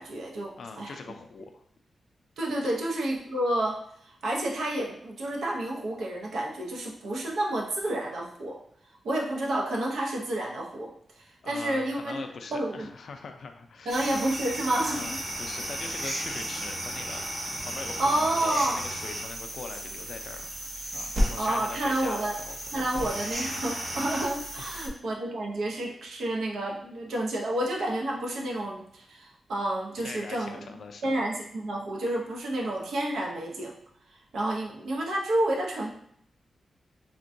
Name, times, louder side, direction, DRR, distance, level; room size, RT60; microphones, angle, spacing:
voice 1, 0.0-1.0 2.4-8.6 9.0-12.2 12.5-12.9 13.9-15.2 18.0-18.8 21.4-22.4 22.7-30.6 31.0-33.7 34.1-35.9, right 1 dB, 90° right, -1 dB, 0.6 m, -30 dB
voice 2, 0.6-1.6 2.6-2.7 11.4-14.1 14.9-20.5 20.9-23.1 24.6-24.9 30.0-31.1, left 4 dB, 60° left, 6 dB, 0.3 m, -42 dB
sound 1, 13.9-24.9, right 1 dB, 40° right, 0.6 m, -34 dB
3.6 x 2.2 x 2.5 m, 0.69 s
wide cardioid pair, 170°, 0 cm